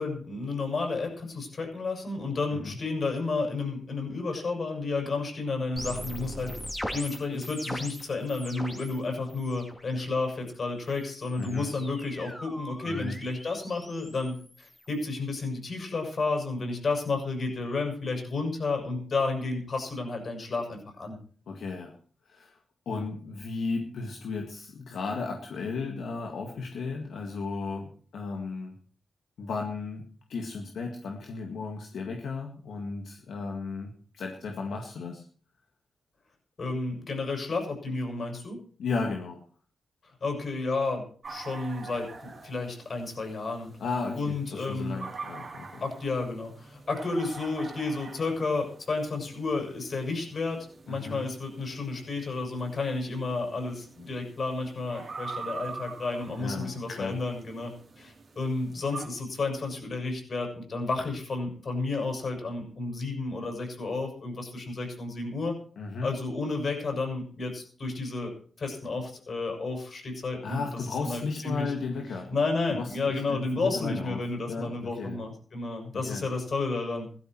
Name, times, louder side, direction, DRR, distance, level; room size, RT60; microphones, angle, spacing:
voice 1, 0.0-6.5 6.9-21.2 36.6-38.6 40.2-45.0 45.8-50.6 50.8-65.5 66.0-71.7 72.1-77.1, left 3 dB, 50° left, 3 dB, 6.8 m, -31 dB
sound 1, 5.8-9.0 9.3-9.8 10.9-15.0, equal, 10° left, 3.0 m, -41 dB
voice 2, 11.4-11.7 12.8-13.2 21.5-22.0 22.2-22.6 22.9-28.8 29.4-35.2 38.8-39.4 43.8-45.8 50.9-51.3 56.4-57.2 65.8-66.1 70.4-72.3 72.7-74.2 74.5-75.2 75.9-76.3, left 4 dB, 80° left, 2 dB, 2.0 m, -35 dB
sound 2, 41.2-59.1, right 4 dB, 50° right, 3.3 m, -45 dB
16.0 x 13.0 x 4.6 m, 0.43 s
cardioid pair, 85°, 0 cm